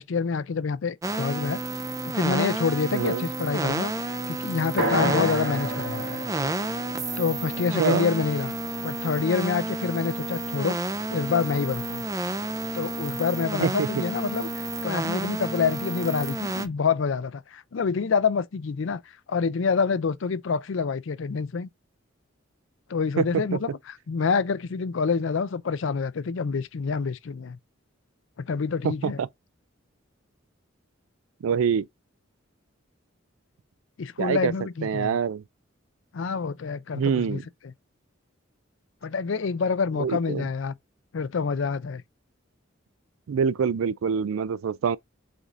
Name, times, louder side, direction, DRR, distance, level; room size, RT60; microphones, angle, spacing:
voice 1, 0.0-1.6 2.0-3.9 4.3-6.2 7.2-8.5 8.8-10.8 11.1-12.0 12.7-14.5 14.8-19.0 19.3-21.7 22.9-27.6 28.4-29.2 34.0-35.2 36.1-37.7 39.0-40.7 41.1-42.0, left 5 dB, 70° left, 0.4 m, -27 dB
sound 1, 1.0-16.7, right 2 dB, 15° right, 0.4 m, -30 dB
voice 2, 2.9-3.2 7.8-8.1 13.6-13.9 23.2-23.3 23.5-23.6 28.8-29.3 31.4-31.9 34.2-34.5 34.8-35.4 36.9-37.4 40.0-40.5 43.3-45.0, right 7 dB, 85° right, 0.3 m, -25 dB
sound 2, 4.8-8.7, equal, 65° right, 1.6 m, -31 dB
5.0 x 2.7 x 3.7 m
head